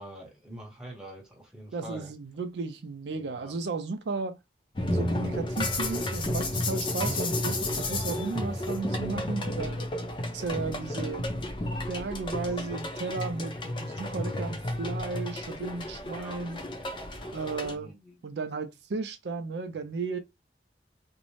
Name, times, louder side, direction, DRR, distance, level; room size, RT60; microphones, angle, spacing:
voice 1, 0.0-2.1 3.1-3.5 6.9-7.1 9.7-9.8 12.3-12.8 16.1-18.1, right 1 dB, 5° right, 0.8 m, -45 dB
voice 2, 1.7-4.4 4.9-9.8 10.3-11.4 11.9-16.6 17.3-17.9 18.2-20.2, right 4 dB, 75° right, 0.4 m, -34 dB
sound 1, 4.8-17.7, left 1 dB, 30° left, 0.5 m, -32 dB
2.6 x 2.0 x 3.0 m
head